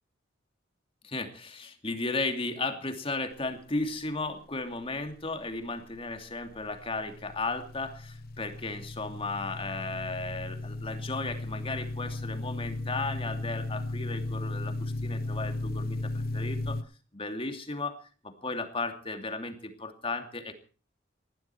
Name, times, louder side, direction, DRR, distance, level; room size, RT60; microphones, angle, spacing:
voice 1, 1.0-16.8 17.1-18.0 18.2-20.5, left 3 dB, 30° left, 6 dB, 2.7 m, -35 dB
sound 1, 6.0-16.8, left 2 dB, 55° left, 0.9 m, -36 dB
20.5 x 14.5 x 4.6 m, 0.39 s
head